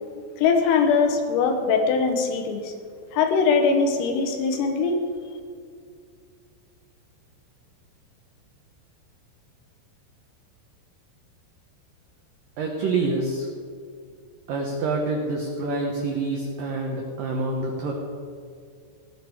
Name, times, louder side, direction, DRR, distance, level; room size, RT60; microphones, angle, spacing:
voice 1, 0.4-2.7 3.1-5.0, left 5 dB, 90° left, 4 dB, 4.0 m, -21 dB
voice 2, 12.6-13.5 14.5-17.9, right 3 dB, 85° right, 1 dB, 1.9 m, -27 dB
17.5 x 10.0 x 4.8 m, 2.2 s
omnidirectional pair, 5.8 m